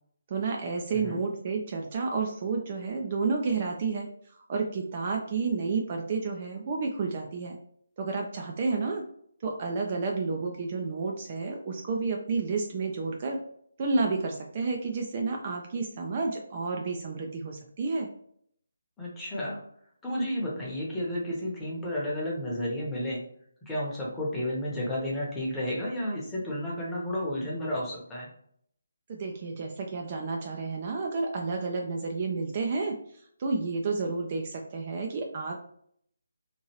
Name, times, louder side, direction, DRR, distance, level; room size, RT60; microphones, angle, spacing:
voice 1, 0.3-7.6 8.0-9.0 9.4-13.4 13.8-18.1 29.1-33.0 33.4-35.6, right 4 dB, 35° right, 1 dB, 0.4 m, -30 dB
voice 2, 19.0-19.6 20.0-23.2 23.7-28.3, left 1 dB, 10° left, -6 dB, 0.9 m, -32 dB
2.9 x 2.6 x 2.9 m, 0.66 s
figure-of-eight pair, 150°, 0 cm